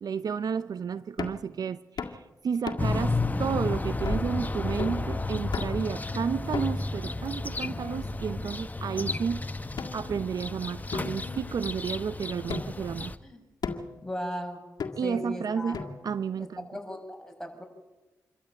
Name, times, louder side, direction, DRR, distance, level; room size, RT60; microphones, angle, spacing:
voice 1, 0.0-9.4 9.8-13.1 15.0-16.7, right 6 dB, 65° right, 15 dB, 0.6 m, -32 dB
sound 1, 1.2-1.5 2.0-2.2 2.7-3.0 3.5-3.6 4.1-4.3 4.8-5.1 5.5-5.9 6.5-7.0 7.6-8.4 9.1-9.2 9.8-10.5 10.9-12.0 12.5-12.9 13.6-14.0 14.8-15.3 15.7-16.3, left 5 dB, 70° left, 1.9 m, -37 dB
sound 2, 2.8-13.2, left 2 dB, 25° left, 1.2 m, -32 dB
voice 2, 14.0-14.6 15.0-15.8 16.4-17.6, left 1 dB, 5° left, 3 dB, 6.9 m, -37 dB
26.5 x 13.5 x 8.7 m, 1.1 s
cardioid pair, 55°, 7 cm